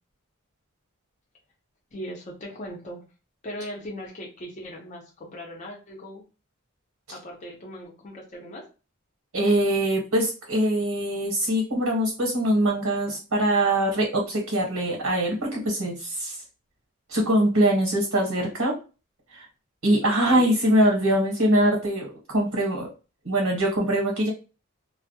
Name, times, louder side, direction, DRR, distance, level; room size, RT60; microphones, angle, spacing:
voice 1, 1.9-3.0 3.4-6.2 7.1-8.6 20.0-20.6, equal, 35° left, -2 dB, 0.5 m, -39 dB
voice 2, 9.3-16.4 17.1-18.7 19.3-19.5 19.8-22.9 23.2-24.3, right 1 dB, 90° right, 0 dB, 0.9 m, -23 dB
2.2 x 2.0 x 2.7 m, 0.32 s
head